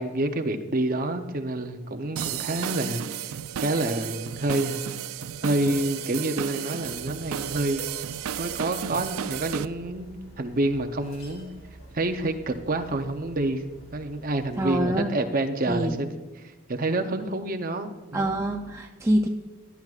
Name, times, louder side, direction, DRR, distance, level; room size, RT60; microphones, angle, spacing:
voice 1, 0.0-3.0 3.6-4.8 5.4-7.9 8.4-11.5 11.9-13.6 13.9-16.1 16.4-18.4, right 2 dB, 40° right, 7 dB, 0.7 m, -28 dB
sound 1, 2.2-9.7, right 10 dB, 80° right, 0.4 m, -33 dB
sound 2, 6.8-14.8, right 1 dB, 70° left, 3.0 m, -49 dB
voice 2, 14.6-15.1 15.7-16.0 18.1-19.3, right 1 dB, 15° right, 1 dB, 0.4 m, -25 dB
17.0 x 10.5 x 2.4 m, 1.3 s
head